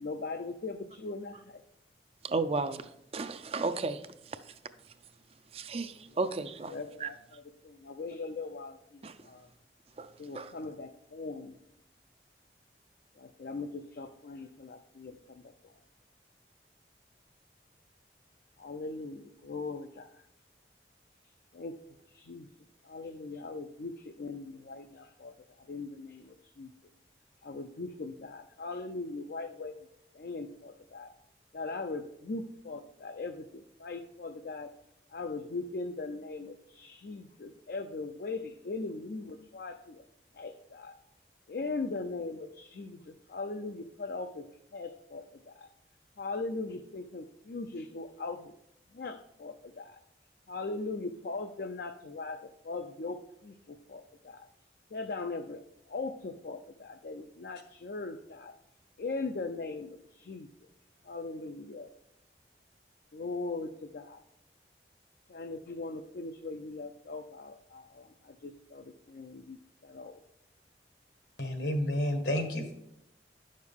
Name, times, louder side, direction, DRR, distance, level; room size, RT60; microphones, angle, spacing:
voice 1, 0.0-1.6 6.7-9.5 10.2-11.6 13.2-15.7 18.6-20.3 21.5-21.8 22.1-22.5 22.8-26.7 27.4-29.8 30.1-31.1 31.5-34.7 35.1-40.1 40.3-41.0 41.5-45.7 46.2-48.5 48.9-50.0 50.5-54.5 54.9-55.6 55.9-58.5 59.0-60.5 61.0-61.9 63.1-64.2 65.3-70.2, left 3 dB, 60° left, 0.4 m, -40 dB
voice 2, 2.2-4.5 5.5-6.7 7.0-7.1 9.0-9.2 10.0-10.5, right 3 dB, 35° right, 0.4 m, -34 dB
voice 3, 71.4-72.7, left 1 dB, 75° left, 1.5 m, -30 dB
10.0 x 6.5 x 3.6 m
head